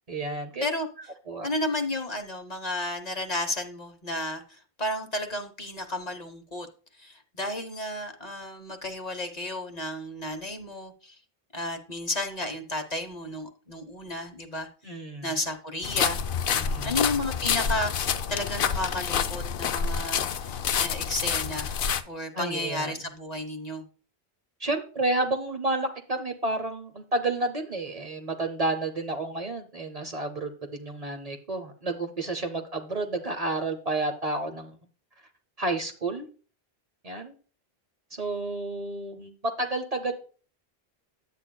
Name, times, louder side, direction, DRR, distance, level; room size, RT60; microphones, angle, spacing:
voice 1, 0.1-0.6 1.3-1.5 14.8-15.3 16.6-17.0 22.3-23.0 24.6-34.8 35.6-36.3 37.0-37.3 38.1-40.1, right 2 dB, 40° right, 5 dB, 0.8 m, -30 dB
voice 2, 1.4-4.4 4.8-6.7 7.0-11.2 11.5-14.7 15.2-16.2 16.8-21.7 22.0-23.8, left 1 dB, 45° left, 5 dB, 1.0 m, -32 dB
sound 1, 15.8-22.0, left 7 dB, 65° left, 0.7 m, -28 dB
10.0 x 8.3 x 2.2 m, 0.39 s
omnidirectional pair, 1.0 m